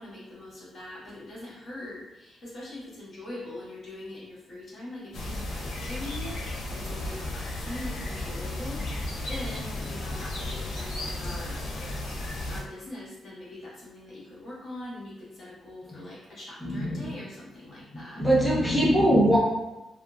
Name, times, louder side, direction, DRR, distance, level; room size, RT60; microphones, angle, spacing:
voice 1, 0.0-11.6 12.5-18.2, left 1 dB, 45° left, -8 dB, 1.4 m, -42 dB
sound 1, 5.1-12.6, left 2 dB, 90° left, 0.7 m, -34 dB
voice 2, 16.6-17.2 18.2-19.4, equal, ahead, -5 dB, 0.6 m, -22 dB
3.1 x 2.4 x 2.2 m, 1.0 s
cardioid pair, 130°, 0 cm